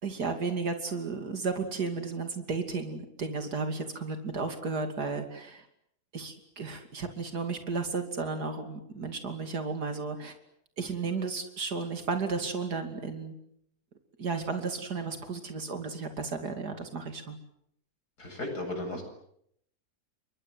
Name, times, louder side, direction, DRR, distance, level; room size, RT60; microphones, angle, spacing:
voice 1, 0.0-5.7 6.1-10.3 10.8-13.3 14.2-17.4, right 4 dB, 85° right, 6 dB, 3.2 m, -33 dB
voice 2, 18.2-19.0, left 1 dB, 80° left, 5 dB, 8.4 m, -35 dB
29.5 x 24.0 x 8.0 m, 0.71 s
omnidirectional pair, 1.7 m